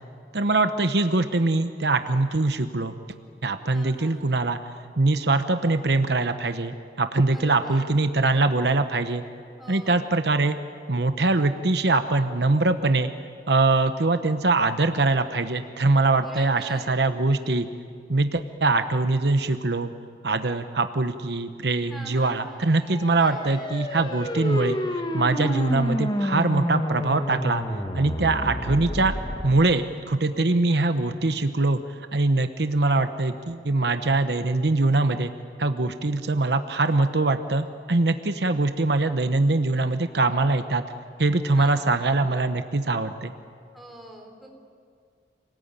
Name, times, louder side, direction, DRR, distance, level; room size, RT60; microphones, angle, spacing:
voice 1, 0.3-3.0 3.4-4.6 5.0-9.2 9.7-10.6 10.9-13.1 13.5-17.7 18.1-19.9 20.2-24.8 25.1-27.6 27.9-29.1 29.4-31.8 32.1-35.3 35.6-40.8 41.2-43.3, right 2 dB, 70° right, 9 dB, 1.0 m, -23 dB
voice 2, 3.7-4.4 7.2-7.9 9.6-10.1 16.2-16.9 21.9-22.7 23.1-23.7 41.5-42.3 43.7-44.5, right 1 dB, ahead, 0 dB, 3.7 m, -44 dB
sound 1, 22.7-29.6, left 1 dB, 25° left, 1.6 m, -29 dB
28.0 x 19.5 x 9.0 m, 2.2 s
head